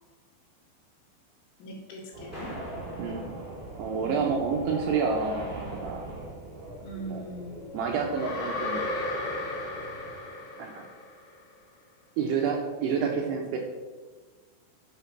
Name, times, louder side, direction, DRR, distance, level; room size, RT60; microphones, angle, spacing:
voice 1, 1.6-2.5 4.0-4.3 6.8-7.7, right 1 dB, 70° left, 0 dB, 4.2 m, -40 dB
sound 1, 2.1-10.1, right 2 dB, 35° right, 3.2 m, -42 dB
sound 2, 2.3-4.7, left 1 dB, 10° left, 2.7 m, -45 dB
voice 2, 3.0-3.4 3.8-6.1 7.1-7.2 7.7-8.8 10.6-10.9 12.2-13.6, right 5 dB, 75° right, 1 dB, 2.5 m, -29 dB
sound 3, 8.1-11.2, left 2 dB, 30° left, 3.2 m, -34 dB
10.0 x 6.2 x 5.9 m, 1.4 s
omnidirectional pair, 5.6 m